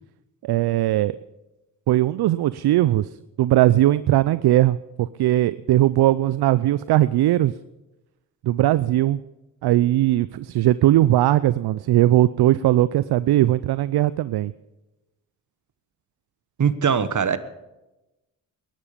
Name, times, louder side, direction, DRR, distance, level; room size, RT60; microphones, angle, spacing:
voice 1, 0.4-1.2 1.9-3.1 3.4-7.5 8.4-9.2 9.6-14.5, right 14 dB, 65° right, 17 dB, 0.6 m, -19 dB
voice 2, 16.6-17.4, right 7 dB, 45° right, 14 dB, 1.3 m, -21 dB
19.5 x 11.5 x 5.2 m, 1.0 s
supercardioid pair, 45°, 43 cm